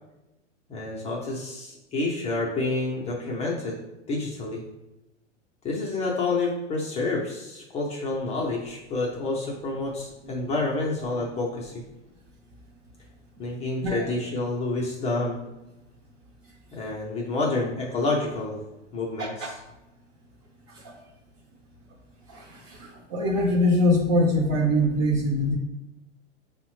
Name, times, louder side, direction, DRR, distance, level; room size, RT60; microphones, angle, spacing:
voice 1, 0.7-3.8 4.1-4.6 5.6-11.7 13.4-15.4 16.7-18.6 18.9-19.5, left 2 dB, 20° left, -2 dB, 0.4 m, -28 dB
voice 2, 19.2-19.5 20.8-20.9 23.1-25.6, left 1 dB, 35° right, -1 dB, 0.7 m, -22 dB
5.2 x 2.1 x 3.0 m, 0.97 s
hypercardioid pair, 130°, 36 cm